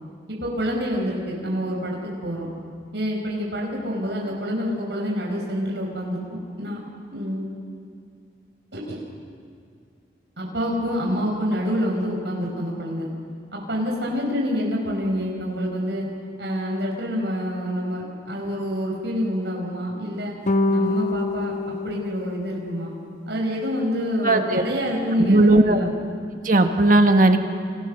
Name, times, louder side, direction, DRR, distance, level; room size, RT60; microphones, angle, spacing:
voice 1, 0.4-2.5 2.9-6.8 7.1-7.5 8.7-9.0 10.4-13.1 13.5-16.1 16.4-20.3 20.7-22.9 23.3-25.9, equal, 80° right, -1 dB, 5.2 m, -27 dB
sound 1, 20.5-23.0, left 2 dB, 45° left, 0.8 m, -25 dB
voice 2, 24.2-24.6 25.2-25.8 26.4-27.4, right 2 dB, 50° right, 5 dB, 1.5 m, -16 dB
29.5 x 25.5 x 6.7 m, 2.2 s
head